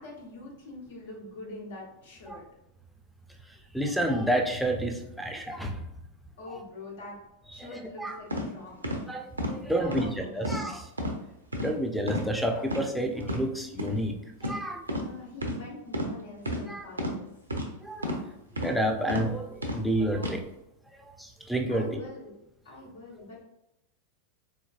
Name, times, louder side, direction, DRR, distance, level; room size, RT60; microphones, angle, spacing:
voice 1, 0.0-2.4 6.4-7.2 7.5-8.8 9.6-10.4 14.9-17.2 21.7-22.4 22.6-23.4, left 2 dB, 70° left, -2 dB, 1.3 m, -44 dB
voice 2, 3.7-5.8 6.5-6.6 7.6-8.2 9.1-10.9 11.6-14.2 14.4-14.8 16.7-16.9 17.8-18.2 18.6-20.4 21.2-22.0, right 1 dB, ahead, 4 dB, 0.5 m, -29 dB
sound 1, 8.3-8.4 8.8-9.0 9.4-9.5 9.9-10.1 10.4-10.6 11.0-11.1 11.5-11.7 12.1-12.3 12.6-12.8 13.2-13.4 13.8-13.9 14.4-14.6 14.9-15.1 15.4-15.6 15.9-16.1 16.4-16.6 17.0-17.1 17.5-17.7 18.0-18.2 18.6-18.7 19.1-19.2 19.6-19.8 20.2-20.3, equal, 90° right, 0.6 m, -31 dB
3.7 x 3.1 x 2.4 m, 0.84 s
figure-of-eight pair, 95°, 0 cm